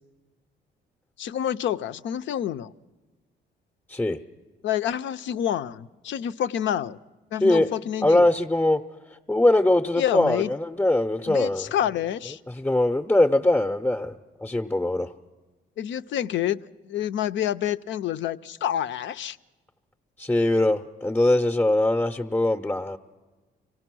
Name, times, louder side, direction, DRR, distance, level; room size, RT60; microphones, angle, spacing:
voice 1, 1.2-2.7 4.6-7.0 7.3-8.3 10.0-10.5 11.3-12.4 15.8-19.4, left 10 dB, 70° left, 13 dB, 0.5 m, -28 dB
voice 2, 3.9-4.2 7.4-7.7 8.0-8.8 9.3-11.7 12.5-15.1 20.2-23.0, left 1 dB, 10° left, 5 dB, 0.6 m, -22 dB
25.0 x 17.5 x 6.1 m, 1.2 s
cardioid pair, 90°, 20 cm